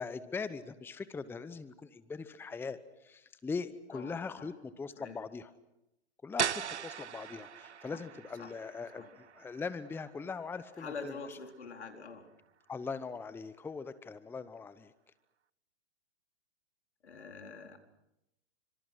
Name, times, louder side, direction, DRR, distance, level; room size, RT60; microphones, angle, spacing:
voice 1, 0.0-5.5 6.2-11.4 12.7-14.9, left 4 dB, 5° left, 14 dB, 0.9 m, -41 dB
voice 2, 3.9-4.6 5.0-5.2 7.9-8.0 8.4-8.5 9.0-9.1 10.8-12.3 17.0-17.8, left 4 dB, 80° left, 4 dB, 4.4 m, -45 dB
sound 1, 6.4-12.0, right 8 dB, 85° right, 0.9 m, -40 dB
29.5 x 26.0 x 6.3 m, 0.88 s
hypercardioid pair, 120°, 33 cm